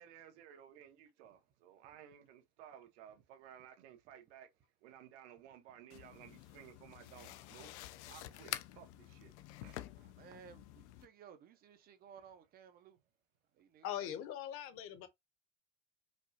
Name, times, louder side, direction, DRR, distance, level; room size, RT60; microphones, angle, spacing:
voice 1, 0.0-4.5 4.8-7.7 8.1-9.9, right 10 dB, 85° right, 1.3 m, -57 dB
sound 1, 5.9-11.1, left 15 dB, 85° left, 0.5 m, -49 dB
voice 2, 10.0-13.0 13.5-14.2, right 7 dB, 30° right, 0.5 m, -58 dB
voice 3, 13.8-15.1, left 11 dB, 40° left, 0.8 m, -41 dB
5.1 x 2.3 x 2.6 m
supercardioid pair, 150°, 33 cm